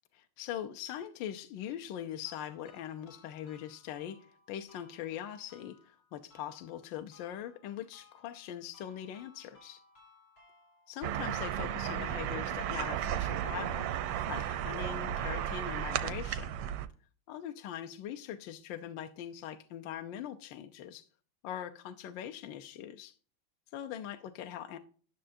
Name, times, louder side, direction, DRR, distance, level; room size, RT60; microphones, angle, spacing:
voice 1, 0.1-9.8 10.9-16.5 17.3-21.1 21.4-23.1 23.7-24.8, left 10 dB, 75° left, 1.2 m, -42 dB
sound 1, 2.2-15.2, left 3 dB, 90° left, 4.8 m, -63 dB
sound 2, 11.0-16.9, right 10 dB, 85° right, 1.5 m, -34 dB
11.0 x 6.6 x 2.6 m
omnidirectional pair, 2.3 m